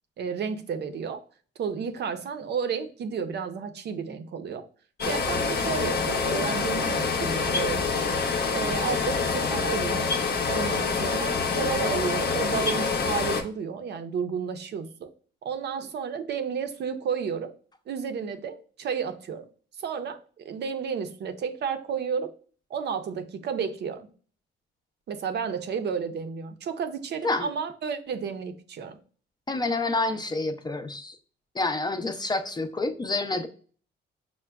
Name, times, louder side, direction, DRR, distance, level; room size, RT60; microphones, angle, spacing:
voice 1, 0.2-1.2 1.6-4.7 5.1-8.0 8.5-10.1 10.5-15.1 15.4-17.5 17.9-19.5 19.8-20.2 20.4-22.3 22.7-24.1 25.1-29.0, right 6 dB, 60° right, 0.5 m, -32 dB
sound 1, 5.0-13.4, left 5 dB, 55° left, 0.7 m, -26 dB
voice 2, 29.5-31.2 31.5-33.5, left 2 dB, 20° left, 0.4 m, -28 dB
5.8 x 2.1 x 2.2 m
cardioid pair, 90°, 20 cm